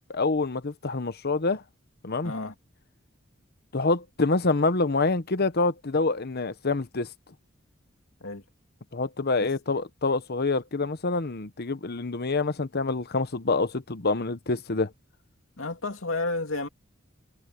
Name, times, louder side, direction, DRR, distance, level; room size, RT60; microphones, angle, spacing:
voice 1, 0.1-1.6 2.0-2.3 3.7-7.1 8.9-14.9, left 3 dB, 55° left, 1.0 m, -26 dB
voice 2, 2.2-2.5 8.2-8.4 9.4-9.5 15.6-16.7, left 2 dB, 80° left, 2.5 m, -31 dB
head